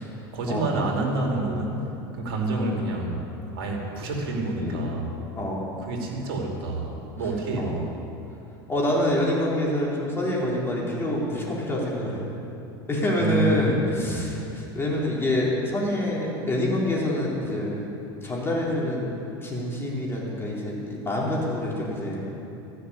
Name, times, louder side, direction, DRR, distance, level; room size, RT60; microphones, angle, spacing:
voice 1, 0.3-1.8 2.1-3.2 3.5-5.1 5.8-7.9 13.2-14.3, right 2 dB, 75° right, 0 dB, 2.7 m, -28 dB
voice 2, 5.4-5.7 7.6-7.7 8.7-12.2 12.9-17.8 18.2-19.1 19.4-22.2, left 1 dB, 20° left, -4 dB, 3.7 m, -26 dB
14.0 x 6.6 x 9.6 m, 2.9 s
hypercardioid pair, 95°, 12 cm